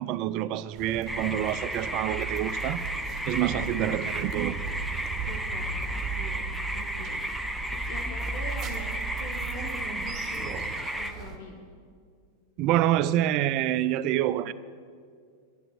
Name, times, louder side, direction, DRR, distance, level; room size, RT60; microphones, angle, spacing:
voice 1, 0.0-2.8 3.3-4.6 12.6-14.5, right 12 dB, 40° right, 16 dB, 0.4 m, -27 dB
sound 1, 0.7-11.4, right 4 dB, 25° right, 1.4 m, -37 dB
sound 2, 1.1-11.1, right 1 dB, ahead, 0.6 m, -34 dB
voice 2, 5.3-10.7 11.0-11.7, left 3 dB, 50° left, 1 dB, 1.4 m, -44 dB
11.0 x 11.0 x 7.4 m, 2.1 s
figure-of-eight pair, 90°, 0 cm